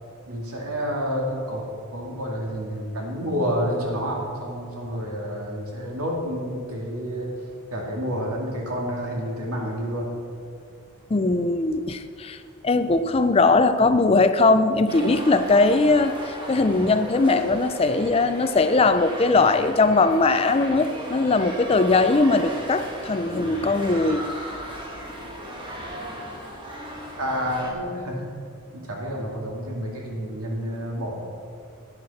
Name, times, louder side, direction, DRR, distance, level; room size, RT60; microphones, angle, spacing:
voice 1, 0.3-1.6 1.9-7.4 7.7-10.1 27.2-28.3 28.7-31.1, equal, 90° right, -1 dB, 2.2 m, -29 dB
voice 2, 11.1-12.4 12.6-24.3, left 3 dB, 25° left, 10 dB, 0.4 m, -20 dB
sound 1, 14.9-27.7, equal, 20° right, 1.3 m, -36 dB
10.5 x 9.5 x 4.2 m, 2.4 s
head